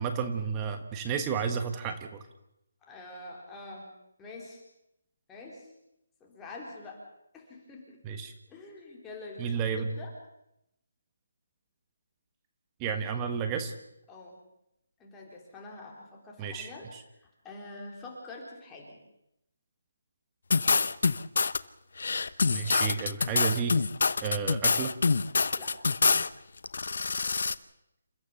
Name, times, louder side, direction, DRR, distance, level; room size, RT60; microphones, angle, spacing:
voice 1, 0.0-2.2 8.0-8.3 9.4-9.9 12.8-13.7 16.4-17.0 22.5-23.8 24.2-24.9, right 6 dB, 15° right, 7 dB, 1.3 m, -32 dB
voice 2, 2.8-3.9 4.2-4.6 5.3-5.7 6.2-7.0 7.3-8.0 8.5-10.1 14.1-14.4 15.0-19.0 25.6-25.7, left 2 dB, 10° left, -2 dB, 3.8 m, -46 dB
sound 1, 20.5-21.6 22.0-26.3 26.6-27.6, left 4 dB, 65° left, 0.9 m, -26 dB
28.5 x 14.5 x 7.0 m, 0.83 s
hypercardioid pair, 165°, 0 cm